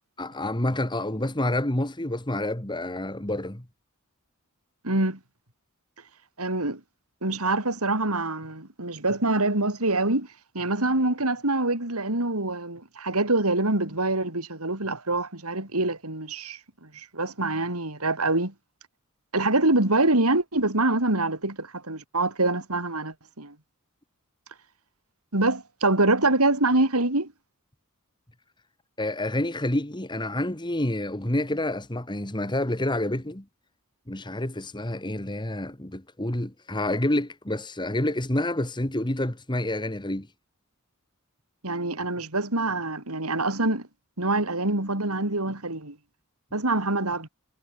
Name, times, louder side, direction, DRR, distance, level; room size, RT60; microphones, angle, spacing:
voice 1, 0.2-3.6 29.0-33.4 34.1-40.3, left 1 dB, 20° left, 1.8 m, -28 dB
voice 2, 4.8-5.2 6.4-6.8 7.2-10.3 10.5-18.5 19.3-23.5 25.3-27.3 41.6-43.9 44.2-46.0 46.5-47.3, right 2 dB, 80° right, 4.8 m, -25 dB
head